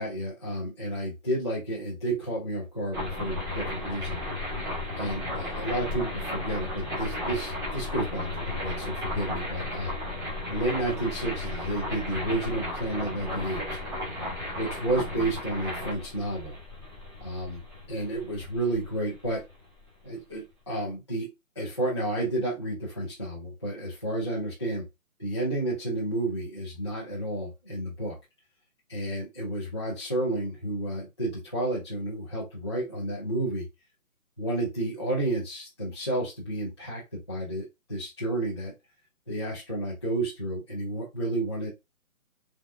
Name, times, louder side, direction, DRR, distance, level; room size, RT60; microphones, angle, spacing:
voice 1, 0.0-4.2 5.0-10.0 10.5-13.8 14.6-16.6 17.2-17.6 17.9-19.5 20.0-24.9 25.2-28.2 28.9-33.7 34.4-38.7 39.3-41.7, right 1 dB, 20° left, -8 dB, 0.5 m, -31 dB
sound 1, 2.9-19.8, left 1 dB, 15° right, 0.8 m, -34 dB
3.4 x 2.2 x 2.5 m, 0.21 s
hypercardioid pair, 160°, 42 cm